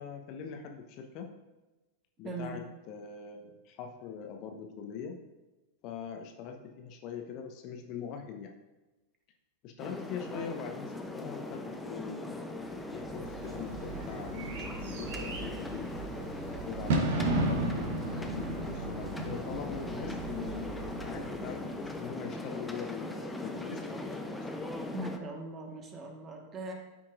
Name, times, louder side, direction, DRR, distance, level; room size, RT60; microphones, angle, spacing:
voice 1, 0.0-1.3 2.2-2.6 2.9-5.2 5.8-8.5 9.6-15.9 16.6-24.5, left 6 dB, 40° left, 4 dB, 0.9 m, -42 dB
voice 2, 2.2-2.6 24.9-26.7, right 2 dB, 25° right, 2 dB, 1.5 m, -40 dB
sound 1, 9.8-25.2, left 2 dB, 5° left, 0.7 m, -40 dB
Bird / Fireworks, 12.9-22.1, right 2 dB, 55° right, 1.2 m, -35 dB
13.0 x 5.6 x 2.6 m, 1.1 s
figure-of-eight pair, 90°, 0 cm